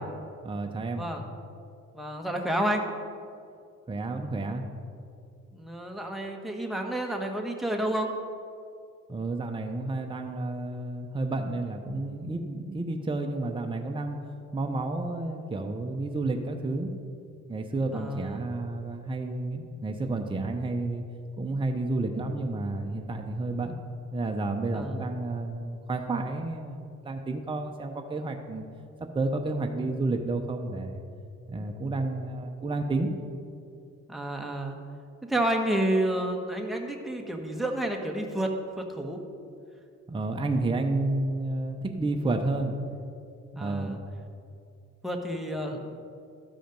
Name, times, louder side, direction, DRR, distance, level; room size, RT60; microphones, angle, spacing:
voice 1, 0.4-1.1 3.9-4.6 9.1-14.2 14.5-16.9 17.5-21.0 21.4-23.8 24.1-28.7 29.1-31.0 31.5-33.1 40.1-42.8 43.5-44.0, right 2 dB, 15° right, 3 dB, 0.8 m, -31 dB
voice 2, 1.9-2.8 5.5-8.1 17.9-18.5 24.7-25.2 34.1-34.8 35.2-39.2 43.5-44.0 45.0-46.0, right 1 dB, ahead, 1 dB, 1.2 m, -30 dB
13.0 x 5.0 x 5.3 m, 2.4 s
cardioid pair, 90°, 30 cm